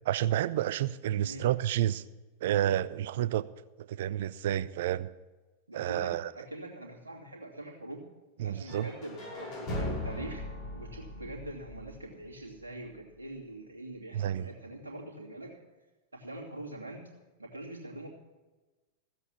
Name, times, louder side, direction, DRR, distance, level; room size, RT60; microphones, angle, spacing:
voice 1, 0.1-2.0 2.4-3.5 3.8-5.1 5.7-6.3 8.4-8.9 14.1-14.5, right 12 dB, 55° right, 18 dB, 0.4 m, -30 dB
voice 2, 5.7-8.0 8.4-10.4 10.7-15.6 16.1-17.0 17.4-18.1, right 1 dB, 75° right, -1 dB, 2.6 m, -43 dB
sound 1, 8.7-12.6, left 1 dB, 40° left, 5.7 m, -38 dB
15.0 x 8.1 x 7.4 m, 1.2 s
figure-of-eight pair, 90°, 0 cm